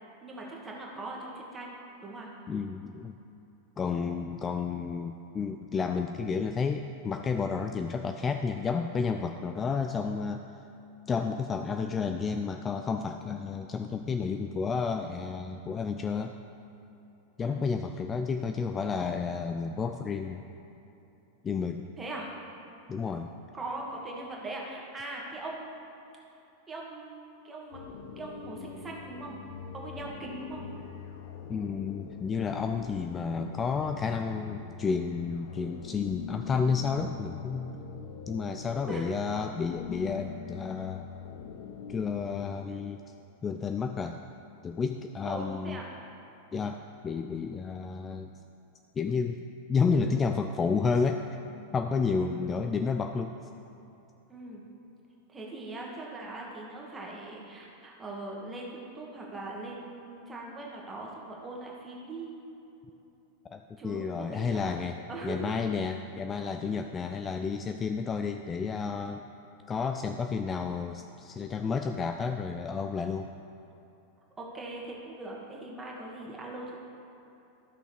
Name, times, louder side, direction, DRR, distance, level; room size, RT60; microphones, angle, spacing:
voice 1, 0.2-1.7 2.0-2.3 17.4-17.6 22.0-22.3 23.5-25.8 26.7-27.8 28.2-29.4 29.7-30.7 38.9-39.3 45.2-45.9 52.2-52.5 54.3-54.6 55.3-62.4 63.8-64.7 65.1-65.5 74.4-76.8, right 2 dB, 15° right, -3 dB, 1.7 m, -40 dB
voice 2, 2.5-3.2 3.8-10.4 11.1-16.4 17.4-20.5 21.4-21.9 22.9-23.4 31.5-37.7 38.3-41.1 41.9-43.0 43.4-44.2 44.6-45.8 46.5-48.3 49.0-49.4 49.7-51.2 51.7-53.4 63.4-65.0 65.2-69.2 69.7-73.3, left 5 dB, 20° left, 6 dB, 0.3 m, -31 dB
sound 1, 27.7-42.5, left 7 dB, 50° left, 0.6 m, -43 dB
13.0 x 6.0 x 3.5 m, 3.0 s
figure-of-eight pair, 90°, 0 cm